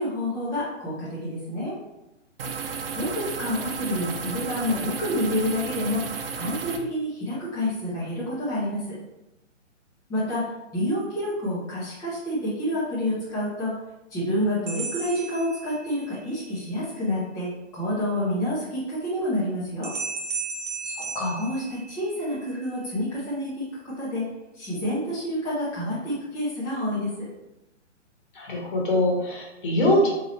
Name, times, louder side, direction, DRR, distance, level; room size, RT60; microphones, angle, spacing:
voice 1, 0.0-1.7 3.0-6.0 6.3-9.0 10.1-10.4 10.7-13.7 14.1-19.9 21.4-24.3 24.5-27.3, left 1 dB, 10° left, -10 dB, 0.9 m, -28 dB
sound 1, 2.4-6.8, right 5 dB, 50° right, 0.5 m, -33 dB
sound 2, 14.7-16.2 19.8-22.3, right 4 dB, 75° right, 0.9 m, -34 dB
voice 2, 28.4-30.1, left 1 dB, 45° left, -2 dB, 1.3 m, -23 dB
4.5 x 3.0 x 3.0 m, 0.94 s
figure-of-eight pair, 135°, 37 cm